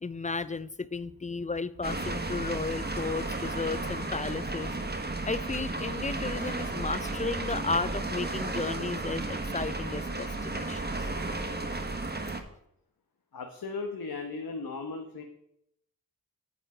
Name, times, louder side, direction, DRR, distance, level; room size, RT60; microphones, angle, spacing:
voice 1, 0.0-4.9 5.2-10.8, left 3 dB, 20° left, 17 dB, 0.4 m, -34 dB
sound 1, 1.8-12.4, right 2 dB, 25° right, 1.2 m, -33 dB
voice 2, 13.3-15.2, left 3 dB, 70° left, 4 dB, 1.1 m, -36 dB
8.5 x 7.3 x 4.9 m, 0.77 s
cardioid pair, 55°, 37 cm